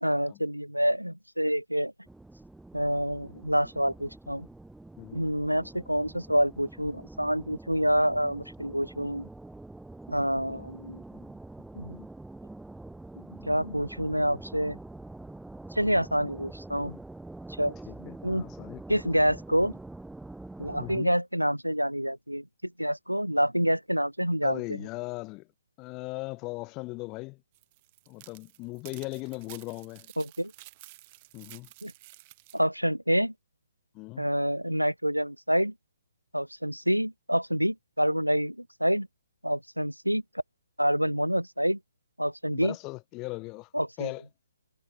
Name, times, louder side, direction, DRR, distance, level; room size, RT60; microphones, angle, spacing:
voice 1, 0.0-1.9 2.7-4.5 5.1-9.3 10.1-11.0 11.8-12.0 13.4-14.8 15.7-17.0 17.6-17.7 18.2-18.4 18.9-19.7 20.6-24.6 30.2-30.5 31.8-31.9 32.5-33.3 34.2-35.7 36.3-39.1 39.4-40.2 40.8-41.8 42.2-42.7 43.7-44.1, equal, 90° right, 0.4 m, -27 dB
sound 1, 2.1-21.0, right 2 dB, 5° right, 1.0 m, -45 dB
voice 2, 5.0-5.3 10.3-10.7 17.9-18.8 20.8-21.1 24.4-25.5 25.8-27.4 28.1-30.1 31.3-31.7 33.9-34.3 42.5-43.7 44.0-44.2, left 23 dB, 20° left, 1.2 m, -38 dB
sound 2, 27.5-32.6, right 21 dB, 30° right, 0.8 m, -52 dB
figure-of-eight pair, 135°, 0 cm